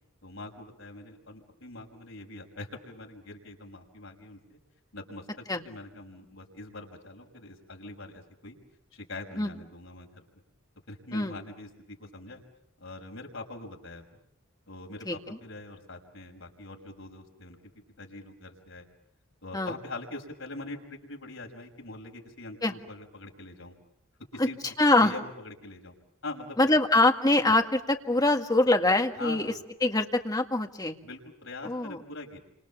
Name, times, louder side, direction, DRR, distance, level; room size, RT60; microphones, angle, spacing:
voice 1, 0.2-4.6 4.9-8.6 8.9-10.2 10.9-12.4 12.8-14.0 14.7-17.6 18.0-18.9 19.4-23.7 24.3-24.6 25.0-25.9 26.2-26.8 29.2-29.6 31.0-32.4, left 2 dB, 75° left, 2 dB, 5.7 m, -43 dB
voice 2, 15.1-15.4 19.5-19.7 22.6-22.7 24.4-24.5 24.8-25.1 26.6-29.5 29.8-31.0 31.6-32.0, left 2 dB, 20° left, 4 dB, 1.8 m, -24 dB
29.5 x 26.5 x 7.2 m, 0.79 s
head